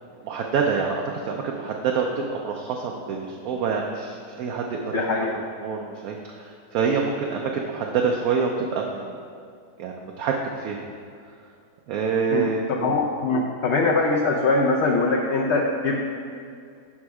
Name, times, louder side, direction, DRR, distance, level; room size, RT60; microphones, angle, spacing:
voice 1, 0.2-5.3 5.6-9.2 9.8-10.8 11.9-12.6, right 5 dB, 70° right, 1 dB, 1.0 m, -26 dB
voice 2, 4.9-5.3 12.3-16.0, left 3 dB, 65° left, -1 dB, 0.7 m, -22 dB
6.1 x 5.6 x 4.8 m, 2.3 s
omnidirectional pair, 1.7 m